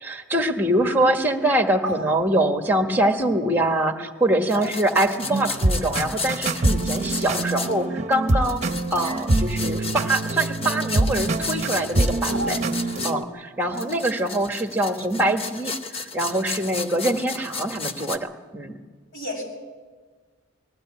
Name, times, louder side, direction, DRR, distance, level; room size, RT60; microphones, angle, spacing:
voice 1, 0.0-8.6 8.9-12.6 13.0-18.8, right 1 dB, 10° right, 5 dB, 1.5 m, -24 dB
sound 1, 4.5-7.7 8.4-13.1 13.7-18.2, left 4 dB, 30° left, 0.9 m, -33 dB
voice 2, 4.6-5.1 12.3-12.6 13.6-14.2 19.1-19.4, equal, 65° left, -1 dB, 7.1 m, -33 dB
sound 2, 5.2-13.2, right 2 dB, 35° right, 0.9 m, -25 dB
20.0 x 15.5 x 8.8 m, 1.4 s
head